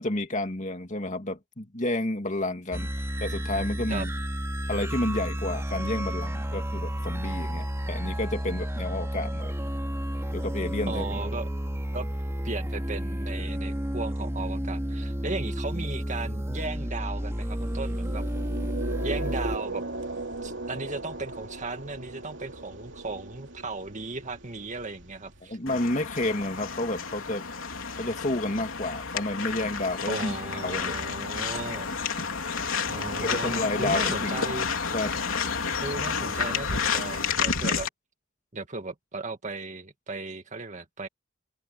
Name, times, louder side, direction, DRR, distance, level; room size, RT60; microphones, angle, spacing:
voice 1, 0.0-2.9 3.2-4.1 4.7-9.5 10.3-11.2 25.5-27.4 28.0-31.0 33.2-34.4 34.9-35.2, left 1 dB, 35° left, 2.4 m, -30 dB
sound 1, 2.7-19.6, equal, 15° right, 2.6 m, -31 dB
voice 2, 10.9-11.5 11.9-12.1 12.4-18.2 19.0-19.8 20.4-25.6 30.1-31.9 32.9-34.7 35.8-37.9 38.5-41.1, right 3 dB, 35° right, 2.1 m, -36 dB
sound 2, 17.6-25.7, right 2 dB, 60° right, 3.0 m, -37 dB
sound 3, 25.7-37.9, left 5 dB, 75° left, 3.6 m, -30 dB
open air
head